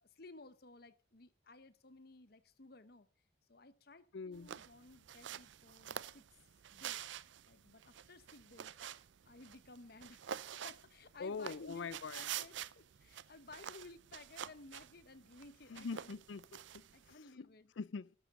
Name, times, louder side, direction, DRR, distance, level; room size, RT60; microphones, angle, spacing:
voice 1, 0.0-3.1 3.5-6.2 6.7-7.0 7.5-10.2 10.6-11.9 12.1-16.1 16.9-17.7, left 2 dB, 55° left, 1.0 m, -57 dB
voice 2, 4.1-4.6 11.2-12.3 15.7-17.5 17.8-18.1, left 5 dB, 75° left, 0.5 m, -44 dB
sound 1, 4.3-17.1, right 9 dB, 75° right, 0.5 m, -48 dB
12.5 x 12.0 x 3.7 m
head